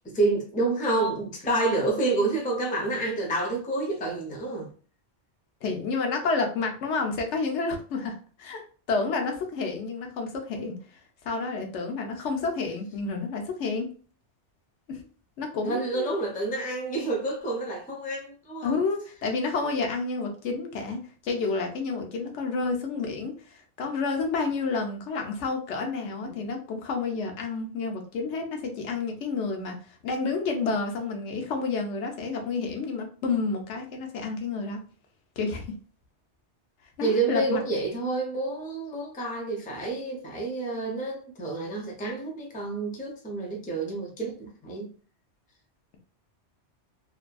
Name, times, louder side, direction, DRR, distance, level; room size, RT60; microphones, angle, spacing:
voice 1, 0.0-4.7 15.7-18.8 26.0-26.4 37.0-44.9, right 2 dB, 15° left, 0.3 m, -29 dB
voice 2, 5.6-10.8 11.2-13.9 14.9-15.0 15.4-16.1 18.6-29.8 30.0-34.8 35.4-35.7 37.0-37.6, left 4 dB, 90° left, 1.0 m, -30 dB
2.6 x 2.5 x 2.2 m
omnidirectional pair, 1.2 m